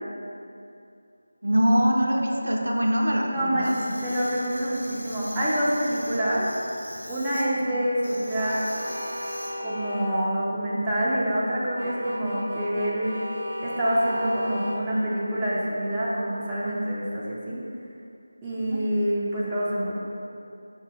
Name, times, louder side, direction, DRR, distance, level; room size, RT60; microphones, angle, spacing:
voice 1, 1.4-3.7 18.7-18.8, equal, 75° right, 0 dB, 0.5 m, -23 dB
voice 2, 3.2-3.7 4.0-6.8 7.1-8.6 9.6-13.1 13.6-17.6 18.4-19.9, equal, 10° right, -10 dB, 0.5 m, -26 dB
sound 1, 3.6-7.4 8.0-9.5, equal, 60° left, 0.9 m, -41 dB
sound 2, 8.3-10.1 11.8-14.8, equal, 85° left, 1.2 m, -34 dB
5.3 x 2.1 x 3.4 m, 2.6 s
figure-of-eight pair, 165°, 0 cm